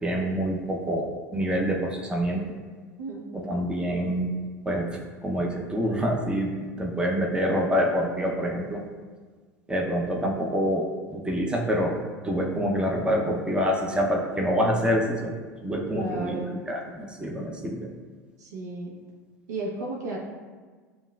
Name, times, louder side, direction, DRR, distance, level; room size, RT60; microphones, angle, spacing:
voice 1, 0.0-2.5 3.3-4.4 4.7-8.8 9.7-12.0 12.2-15.3 15.6-17.9, equal, 10° right, 0 dB, 0.6 m, -26 dB
voice 2, 3.0-3.5 15.9-16.6 18.4-18.9 19.5-20.2, right 2 dB, 75° right, -2 dB, 0.8 m, -34 dB
7.1 x 2.4 x 2.3 m, 1.5 s
hypercardioid pair, 80°, 9 cm